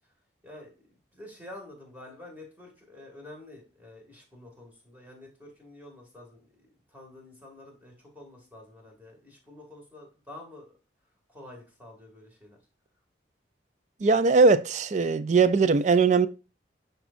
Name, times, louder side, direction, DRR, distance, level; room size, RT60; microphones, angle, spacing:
voice 1, 0.4-6.5 6.9-10.7 11.3-12.6, left 1 dB, 10° right, 2.0 m, -48 dB
voice 2, 14.0-16.3, right 4 dB, 40° right, 0.3 m, -20 dB
9.5 x 4.1 x 2.5 m
head